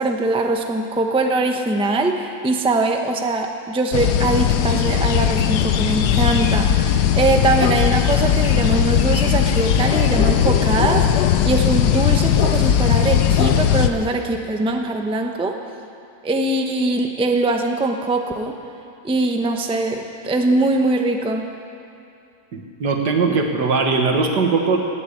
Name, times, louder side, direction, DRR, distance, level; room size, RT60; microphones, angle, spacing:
voice 1, 0.0-15.5 16.2-18.6 19.0-21.4, right 2 dB, 5° right, 3 dB, 0.6 m, -22 dB
sound 1, 3.9-13.9, left 9 dB, 75° left, 1.3 m, -18 dB
voice 2, 22.5-24.8, right 4 dB, 80° right, 3 dB, 2.1 m, -20 dB
17.0 x 8.3 x 9.9 m, 2.6 s
omnidirectional pair, 1.8 m